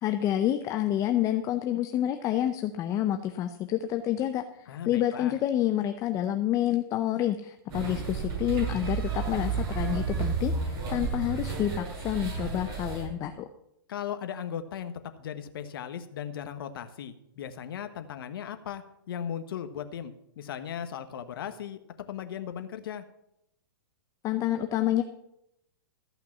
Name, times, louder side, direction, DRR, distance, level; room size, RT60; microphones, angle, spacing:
voice 1, 0.0-13.5 24.2-25.0, left 12 dB, 25° left, 8 dB, 0.6 m, -28 dB
voice 2, 4.7-5.4 13.9-21.8 22.1-23.0, left 9 dB, 70° left, 9 dB, 1.3 m, -37 dB
sound 1, 7.7-13.0, right 5 dB, 30° right, 5.3 m, -32 dB
14.0 x 5.9 x 7.3 m, 0.80 s
hypercardioid pair, 135°, 12 cm